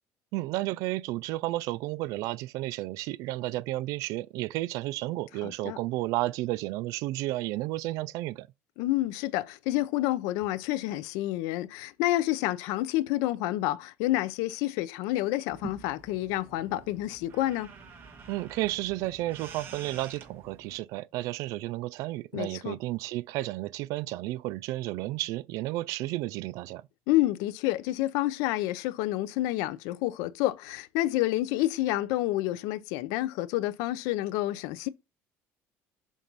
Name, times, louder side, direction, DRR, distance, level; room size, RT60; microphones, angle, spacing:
voice 1, 0.3-8.5 18.3-26.8, right 17 dB, 70° right, 0.4 m, -32 dB
voice 2, 5.4-5.8 8.8-17.7 22.3-22.8 27.1-34.9, left 16 dB, 85° left, 0.5 m, -29 dB
sound 1, 15.5-20.8, right 5 dB, 35° right, 1.4 m, -48 dB
7.3 x 2.6 x 5.4 m
cardioid pair, 155°, 6 cm